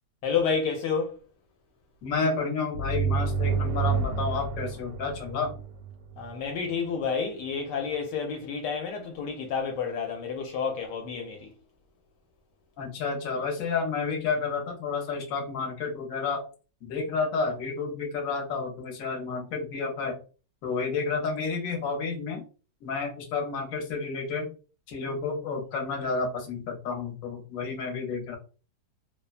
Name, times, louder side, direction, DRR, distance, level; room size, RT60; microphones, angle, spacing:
voice 1, 0.2-1.2 6.2-11.5, left 6 dB, 80° left, 1.2 m, -30 dB
voice 2, 2.0-5.5 12.8-16.4 16.8-20.2 20.6-22.4 22.8-24.5 24.9-28.4, left 4 dB, 60° left, 1.1 m, -30 dB
sound 1, 2.7-6.3, right 5 dB, 85° right, 1.2 m, -29 dB
2.8 x 2.2 x 2.4 m
omnidirectional pair, 1.9 m